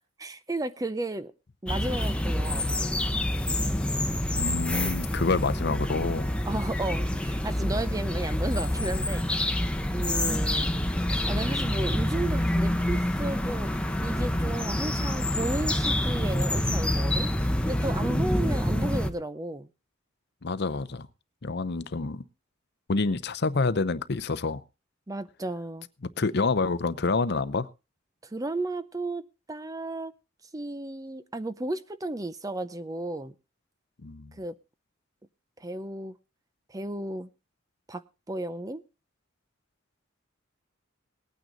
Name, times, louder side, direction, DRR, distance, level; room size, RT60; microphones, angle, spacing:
voice 1, 0.2-1.3 1.6-2.9 6.5-9.2 9.9-10.9 11.2-13.7 14.0-17.3 17.7-19.7 25.1-25.9 28.2-30.1 30.5-33.3 34.4-34.5 35.6-36.2 36.7-37.3 37.9-38.8, right 2 dB, 15° right, 0.6 m, -33 dB
sound 1, 1.7-19.1, left 1 dB, 5° left, 0.9 m, -27 dB
voice 2, 4.3-6.3 18.0-18.2 20.4-21.1 21.4-22.2 22.9-24.6 26.2-27.7 34.0-34.3, left 3 dB, 55° left, 0.7 m, -28 dB
19.0 x 9.2 x 3.9 m
head